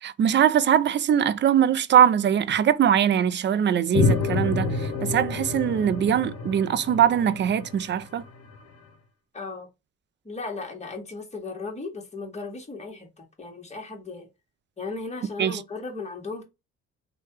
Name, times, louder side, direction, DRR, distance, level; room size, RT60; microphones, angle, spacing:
voice 1, 0.0-8.2 15.4-15.6, right 9 dB, 40° right, 0.4 m, -22 dB
sound 1, 3.9-8.6, left 3 dB, 60° left, 0.8 m, -28 dB
voice 2, 9.3-9.7 10.2-14.3 14.8-16.4, left 3 dB, 20° left, 1.3 m, -36 dB
3.2 x 2.3 x 2.9 m
cardioid pair, 90°, 30 cm